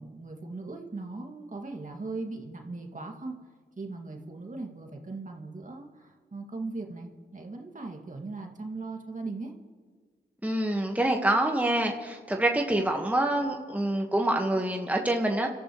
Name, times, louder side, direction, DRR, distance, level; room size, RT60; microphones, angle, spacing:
voice 1, 0.0-3.4 3.8-9.5, right 3 dB, 45° right, 1 dB, 2.4 m, -39 dB
voice 2, 10.4-15.5, right 1 dB, 10° right, 2 dB, 1.6 m, -26 dB
29.5 x 13.5 x 3.2 m, 1.5 s
supercardioid pair, 40°, 19 cm